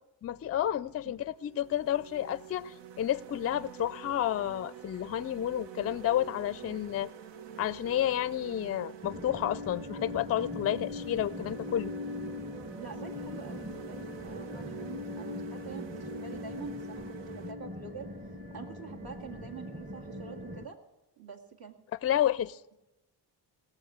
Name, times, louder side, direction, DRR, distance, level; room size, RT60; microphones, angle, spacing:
voice 1, 0.2-7.1 7.6-11.9 22.0-22.6, left 11 dB, 35° left, 0.4 m, -31 dB
sound 1, 0.6-0.8 1.3-17.5, right 9 dB, 85° right, 0.9 m, -47 dB
sound 2, 9.0-20.7, left 2 dB, 20° right, 1.1 m, -41 dB
voice 2, 12.8-18.1 18.5-20.8 21.2-21.8, right 6 dB, 60° right, 2.2 m, -46 dB
18.0 x 7.0 x 8.0 m
cardioid pair, 90°, 42 cm